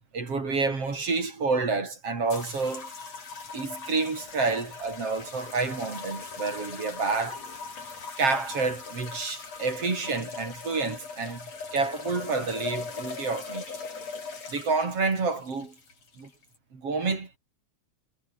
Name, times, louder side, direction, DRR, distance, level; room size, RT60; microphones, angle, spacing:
voice 1, 0.1-2.9 3.5-7.4 8.2-13.8 14.5-15.7 16.2-16.3 16.7-17.4, right 4 dB, 55° right, 5.3 m, -29 dB
sound 1, 2.3-16.6, left 4 dB, 60° left, 5.7 m, -40 dB
omnidirectional pair, 3.3 m